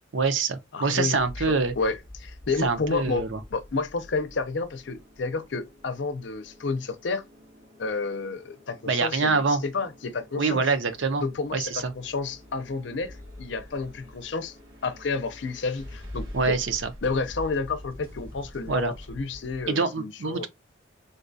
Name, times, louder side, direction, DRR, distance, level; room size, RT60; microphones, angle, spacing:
voice 1, 0.1-1.7 2.6-3.4 8.9-9.6 10.4-11.2 11.5-11.8 16.3-16.9 18.7-18.9 19.7-20.5, right 4 dB, 70° right, 0.6 m, -25 dB
voice 2, 0.7-7.2 7.8-10.6 11.2-14.6 14.8-16.6 17.0-20.5, left 4 dB, 65° left, 0.6 m, -30 dB
sound 1, 1.1-19.7, left 1 dB, 90° right, 2.2 m, -46 dB
3.8 x 2.3 x 2.6 m
head